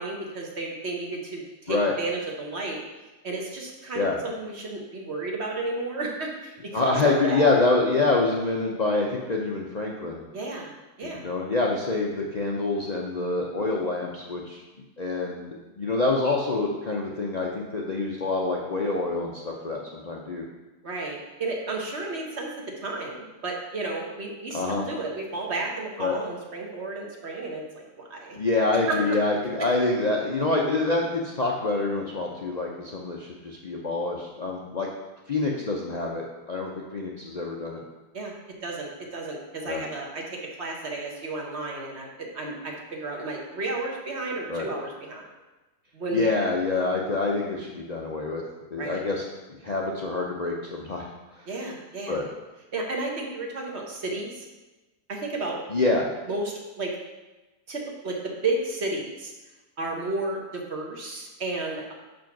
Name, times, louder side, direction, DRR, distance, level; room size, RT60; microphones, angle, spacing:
voice 1, 0.0-2.8 3.2-7.4 10.3-10.7 11.0-11.2 20.8-22.5 22.8-28.4 28.9-29.2 38.1-38.3 38.6-45.2 45.9-46.3 48.8-49.0 51.5-52.2 52.7-54.5 55.1-55.6 56.3-56.9 57.7-58.2 58.4-59.3 59.8-61.9, right 2 dB, 45° right, 0 dB, 1.2 m, -32 dB
voice 2, 6.7-10.2 11.0-14.6 15.0-20.4 24.5-24.9 26.0-26.1 28.4-34.9 35.3-37.8 39.7-39.8 44.5-44.7 46.1-48.4 48.7-49.2 49.6-51.0 52.1-52.3 55.7-56.1, left 3 dB, 80° left, -2 dB, 0.3 m, -26 dB
5.6 x 5.1 x 5.8 m, 1.1 s
omnidirectional pair, 1.8 m